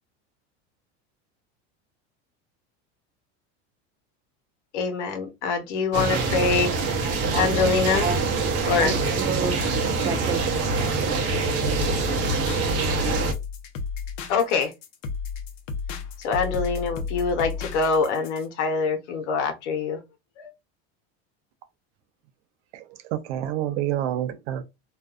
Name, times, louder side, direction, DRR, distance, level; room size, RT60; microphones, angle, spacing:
voice 1, 4.7-6.7 7.3-8.1 8.7-8.9 14.3-14.7 16.2-20.0 20.4-20.5, left 5 dB, 90° left, 0.9 m, -24 dB
sound 1, 5.9-13.3, right 3 dB, 45° right, 0.8 m, -25 dB
voice 2, 7.0-7.5 7.9-8.2 8.8-11.1, right 5 dB, 15° right, 0.3 m, -32 dB
sound 2, 11.6-18.5, left 5 dB, 65° left, 0.7 m, -32 dB
voice 3, 22.7-24.6, right 11 dB, 80° right, 0.6 m, -28 dB
2.5 x 2.2 x 2.4 m
supercardioid pair, 130°, 34 cm